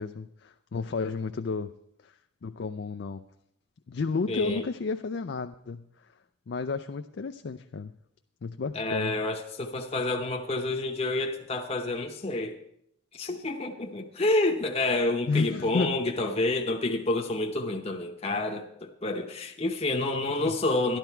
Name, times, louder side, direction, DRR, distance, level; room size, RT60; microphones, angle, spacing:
voice 1, 0.0-1.7 2.0-2.1 2.4-3.2 3.9-6.1 6.5-7.9 8.4-9.1 15.3-16.0 20.4-20.5, left 4 dB, 60° left, 8 dB, 0.4 m, -32 dB
voice 2, 4.3-4.6 8.7-12.6 13.1-21.0, left 2 dB, 30° left, 2 dB, 0.8 m, -29 dB
12.0 x 11.5 x 4.5 m, 0.74 s
head